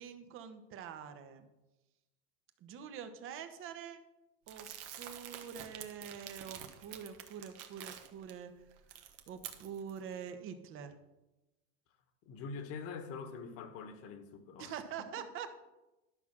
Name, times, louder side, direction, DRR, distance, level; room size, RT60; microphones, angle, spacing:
voice 1, 0.0-1.5 2.6-4.0 4.5-4.7 5.0-8.5 9.3-10.9 14.6-15.5, right 7 dB, 45° right, 9 dB, 1.3 m, -45 dB
Crumpling crinkling, 4.5-8.3 8.7-10.0, right 10 dB, 65° right, 1.4 m, -48 dB
voice 2, 12.2-14.8, left 5 dB, 50° left, 8 dB, 1.7 m, -44 dB
12.0 x 5.9 x 6.1 m, 1.0 s
hypercardioid pair, 105°, 30 cm